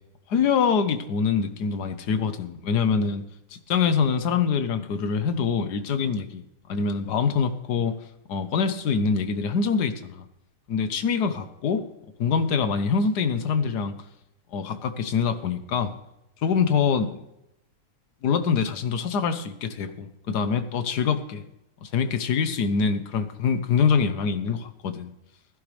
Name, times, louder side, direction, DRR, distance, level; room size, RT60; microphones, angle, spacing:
voice 1, 0.3-3.2 3.5-6.4 6.7-8.0 8.3-10.2 10.7-11.8 12.2-14.0 14.5-15.9 16.4-17.1 18.2-21.4 21.8-25.1, left 6 dB, 85° left, 10 dB, 1.5 m, -24 dB
17.0 x 11.0 x 3.3 m, 0.84 s
omnidirectional pair, 1.7 m